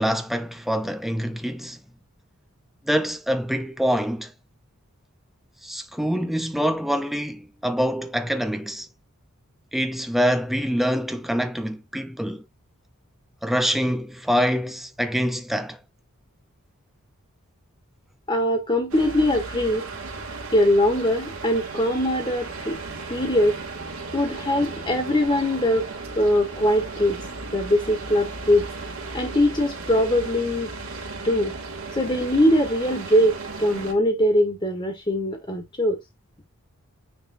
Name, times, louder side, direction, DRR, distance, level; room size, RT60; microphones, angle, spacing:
voice 1, 0.0-1.8 2.8-4.3 5.6-8.9 9.7-12.4 13.4-15.8, equal, ahead, 0.8 m, -25 dB
voice 2, 18.3-19.9 20.5-22.8 23.1-23.6 24.1-25.9 26.1-27.2 27.5-28.7 29.1-30.7 31.2-31.5 31.9-36.0, left 1 dB, 20° left, 1.9 m, -22 dB
sound 1, 18.9-33.9, right 3 dB, 70° right, 2.9 m, -35 dB
9.8 x 3.9 x 2.8 m
head